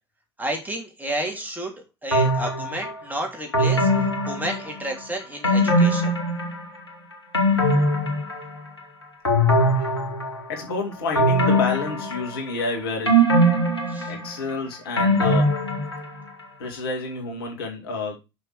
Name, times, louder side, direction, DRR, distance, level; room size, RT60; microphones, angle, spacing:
voice 1, 0.4-3.9 4.3-6.1 13.9-14.1, right 1 dB, 15° right, 3.1 m, -31 dB
sound 1, 2.1-2.9 3.5-5.0 5.4-6.8 7.1-8.8 9.2-10.6 11.1-12.6 13.1-16.3 16.6-16.7, equal, 90° left, 1.8 m, -21 dB
voice 2, 10.5-13.2 14.1-15.6 16.6-18.2, left 3 dB, 70° left, 2.3 m, -29 dB
6.3 x 5.8 x 5.0 m
figure-of-eight pair, 65°, 13 cm